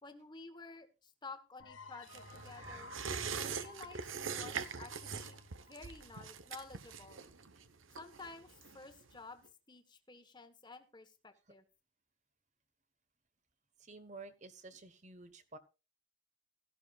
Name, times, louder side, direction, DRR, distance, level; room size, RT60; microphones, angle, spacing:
voice 1, 0.0-2.9 3.4-5.4 5.7-7.2 8.0-11.6, left 3 dB, 20° left, 8 dB, 1.3 m, -52 dB
sound 1, 1.6-7.1, left 3 dB, 70° left, 1.2 m, -54 dB
sound 2, 2.1-9.1 9.4-9.5, right 6 dB, 75° right, 1.0 m, -43 dB
voice 2, 13.8-15.6, right 3 dB, 35° right, 11 dB, 1.2 m, -51 dB
16.5 x 13.5 x 2.4 m, 0.29 s
head